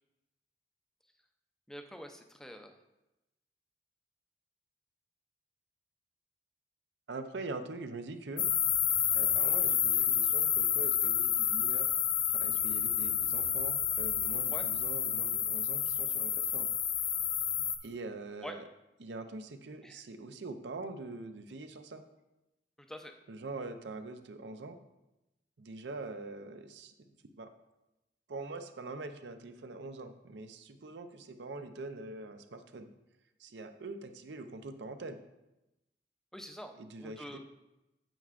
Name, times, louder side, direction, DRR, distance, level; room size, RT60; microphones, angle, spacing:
voice 1, 1.7-2.8 14.5-14.7 18.4-18.6 19.8-20.0 22.9-23.1 36.3-36.7 37.0-37.4, equal, 5° left, 5 dB, 0.5 m, -45 dB
voice 2, 7.1-8.5 9.1-11.9 12.3-16.7 17.8-18.6 19.0-22.0 23.3-24.8 25.6-27.5 28.3-32.9 33.4-35.2 36.8-37.4, right 3 dB, 85° right, 8 dB, 0.6 m, -43 dB
sound 1, 8.4-17.8, left 9 dB, 50° left, 0.7 m, -29 dB
9.0 x 7.4 x 2.5 m, 0.95 s
head